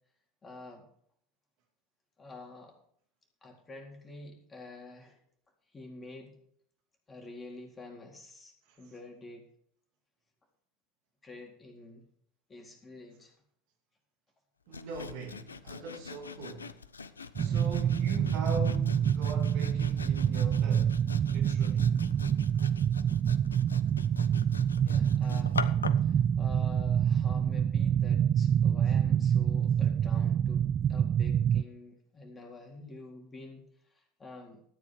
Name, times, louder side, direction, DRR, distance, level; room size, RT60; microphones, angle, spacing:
voice 1, 0.4-0.9 2.2-2.8 3.4-5.2 5.7-6.3 7.1-9.5 11.2-12.1 12.5-13.3 17.0-17.6 24.8-25.7 26.0-34.6, left 2 dB, 20° left, 4.0 m, -48 dB
Sawing, 14.7-26.1, left 5 dB, 80° left, 0.6 m, -43 dB
voice 2, 14.7-16.9 17.4-21.0 21.3-21.9, right 3 dB, 55° right, 2.5 m, -41 dB
sound 1, 17.4-31.6, right 9 dB, 35° right, 0.4 m, -27 dB
13.5 x 9.8 x 4.9 m
figure-of-eight pair, 75°, 0 cm